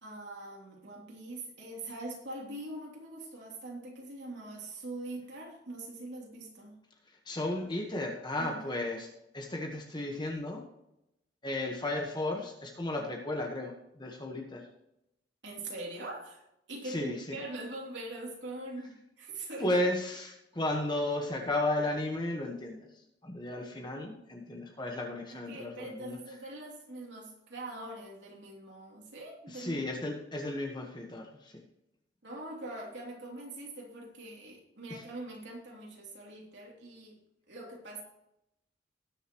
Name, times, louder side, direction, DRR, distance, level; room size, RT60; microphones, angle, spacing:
voice 1, 0.0-6.7 8.4-8.7 15.4-16.4 16.7-19.8 25.3-29.8 32.2-37.2 37.5-38.0, right 2 dB, 75° right, -2 dB, 3.1 m, -43 dB
voice 2, 7.2-9.1 9.3-10.6 11.4-14.6 16.8-17.4 19.6-22.9 23.2-26.2 29.5-31.6 34.9-35.0, left 1 dB, 25° left, 1 dB, 1.3 m, -34 dB
19.0 x 6.8 x 3.1 m, 0.86 s
head